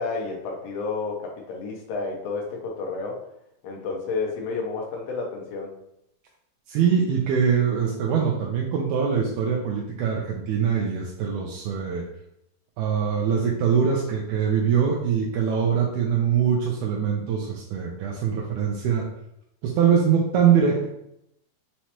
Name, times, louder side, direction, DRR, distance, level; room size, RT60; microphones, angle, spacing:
voice 1, 0.0-3.2 3.6-5.7, left 4 dB, 85° left, -1 dB, 1.4 m, -30 dB
voice 2, 6.7-12.1 12.8-19.1 19.6-20.9, right 7 dB, 80° right, -1 dB, 1.9 m, -23 dB
5.5 x 3.1 x 2.9 m, 0.78 s
omnidirectional pair, 3.8 m